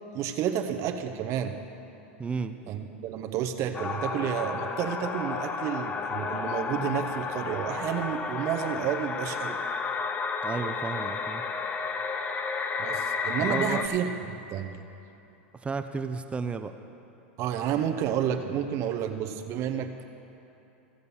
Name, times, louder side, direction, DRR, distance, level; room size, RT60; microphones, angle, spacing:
voice 1, 0.1-1.6 2.7-9.6 12.8-14.8 17.4-20.0, right 9 dB, 45° right, 6 dB, 0.8 m, -30 dB
voice 2, 2.2-2.6 10.4-11.4 13.5-13.8 15.6-16.7, right 5 dB, 15° right, 9 dB, 0.5 m, -32 dB
sound 1, 3.7-13.9, left 5 dB, 25° left, 0.7 m, -32 dB
15.5 x 6.7 x 5.5 m, 2.9 s
hypercardioid pair, 115°, 7 cm